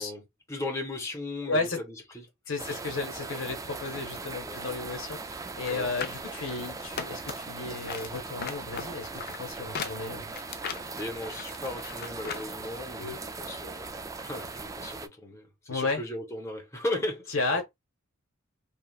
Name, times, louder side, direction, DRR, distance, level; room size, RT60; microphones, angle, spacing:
voice 1, 0.0-2.2 2.7-2.8 4.4-4.6 5.7-5.9 11.0-13.9 14.2-17.5, left 2 dB, 15° left, 0.9 m, -36 dB
voice 2, 1.4-1.8 2.5-10.3 13.0-13.2 15.7-16.0 17.3-17.7, left 3 dB, 80° left, 1.1 m, -33 dB
sound 1, 2.6-15.1, right 3 dB, 15° right, 0.3 m, -39 dB
sound 2, 5.6-7.5 7.8-12.5 12.8-12.9, left 6 dB, 50° left, 0.4 m, -38 dB
3.2 x 2.4 x 2.3 m
head